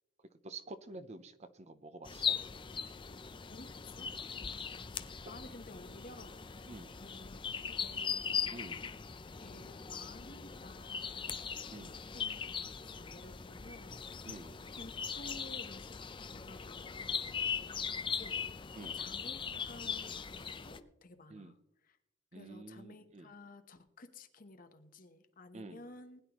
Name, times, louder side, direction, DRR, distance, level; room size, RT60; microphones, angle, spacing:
voice 1, 0.4-2.4 5.2-5.3 6.7-7.0 8.5-8.9 11.7-12.1 14.2-14.7 17.6-17.7 18.8-19.0 21.3-21.5 22.3-23.3 25.5-25.8, right 2 dB, 35° right, 12 dB, 0.7 m, -49 dB
sound 1, 2.0-20.8, left 7 dB, 25° left, 0.5 m, -40 dB
voice 2, 3.5-4.2 5.2-8.4 9.4-11.6 12.1-12.4 12.7-14.1 14.8-16.0 16.3-17.6 17.9-18.6 18.9-21.6 21.8-22.0 22.3-26.2, left 2 dB, 45° left, 8 dB, 1.0 m, -54 dB
20.0 x 10.0 x 3.0 m, 0.88 s
head